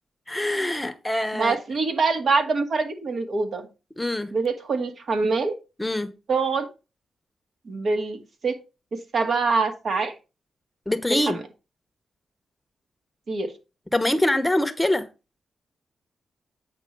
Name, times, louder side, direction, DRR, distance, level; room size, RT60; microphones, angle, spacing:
voice 1, 0.3-1.6 4.0-4.3 5.8-6.1 10.9-11.4 13.9-15.1, left 1 dB, 10° left, 0.9 m, -24 dB
voice 2, 1.3-3.7 4.3-5.5 6.3-6.7 7.7-8.6 8.9-10.1 11.1-11.4 13.3-13.5, right 4 dB, 65° right, 2.1 m, -24 dB
8.8 x 4.8 x 5.3 m
cardioid pair, 85°, 0 cm